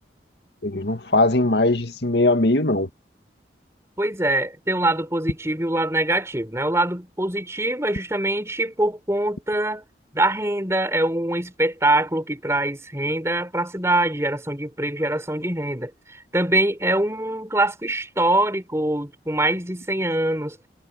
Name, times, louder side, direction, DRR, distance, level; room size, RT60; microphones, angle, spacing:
voice 1, 0.6-2.9, left 2 dB, 75° left, 2.2 m, -20 dB
voice 2, 4.0-9.8 10.1-20.6, right 1 dB, 15° right, 4.1 m, -23 dB
head